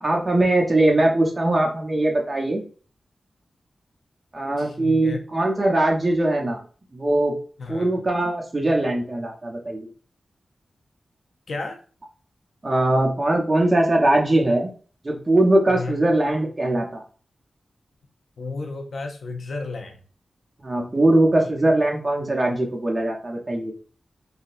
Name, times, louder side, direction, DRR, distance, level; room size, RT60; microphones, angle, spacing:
voice 1, 0.0-2.6 4.3-6.6 6.9-7.3 7.7-9.9 12.6-14.7 15.0-17.0 20.6-23.7, right 1 dB, 30° right, -1 dB, 0.9 m, -21 dB
voice 2, 4.6-5.2 7.6-7.9 11.5-11.8 15.7-16.1 18.4-20.0 21.4-21.5, left 3 dB, 75° left, 3 dB, 0.6 m, -33 dB
3.8 x 2.2 x 2.5 m, 0.39 s
wide cardioid pair, 105°, 0 cm